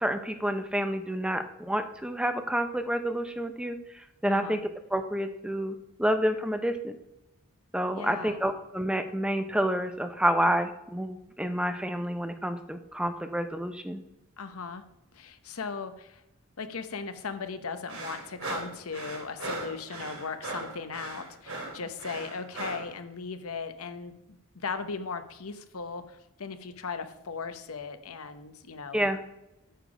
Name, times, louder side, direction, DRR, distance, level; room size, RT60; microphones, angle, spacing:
voice 1, 0.0-3.8 4.2-4.6 4.9-6.9 7.7-14.0 28.9-29.2, equal, 5° right, 8 dB, 0.6 m, -29 dB
voice 2, 4.3-4.6 7.9-8.5 14.4-14.8 15.1-16.2 16.6-24.1 24.5-29.1, left 5 dB, 70° left, 9 dB, 0.9 m, -37 dB
sound 1, 17.9-22.9, right 2 dB, 75° right, 2.4 m, -38 dB
9.1 x 6.9 x 5.0 m, 0.90 s
head